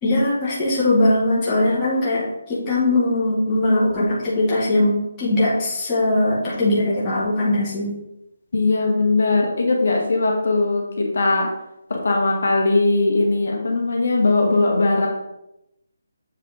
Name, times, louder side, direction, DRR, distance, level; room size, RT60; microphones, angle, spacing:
voice 1, 0.0-7.9, left 1 dB, 15° left, -8 dB, 1.6 m, -20 dB
voice 2, 8.5-11.5 11.9-15.1, left 3 dB, 65° left, 0 dB, 1.7 m, -19 dB
7.4 x 4.2 x 4.1 m, 0.86 s
hypercardioid pair, 175°, 0 cm